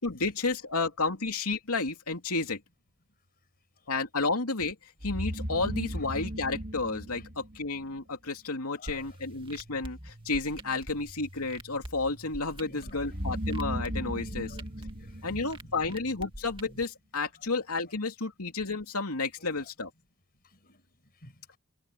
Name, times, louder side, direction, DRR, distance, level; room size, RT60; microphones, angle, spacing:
voice 1, 0.0-2.6 3.9-4.7 5.0-14.6 15.2-19.9, left 3 dB, 75° left, 3.1 m, -31 dB
sound 1, 5.0-8.0 13.0-16.2, equal, 40° right, 2.9 m, -36 dB
voice 2, 8.8-9.2 12.7-13.1 14.2-16.0 17.4-17.5 19.4-19.7 20.4-21.6, left 1 dB, 45° left, 5.4 m, -52 dB
sound 2, 8.9-16.8, right 1 dB, 25° right, 2.0 m, -46 dB
head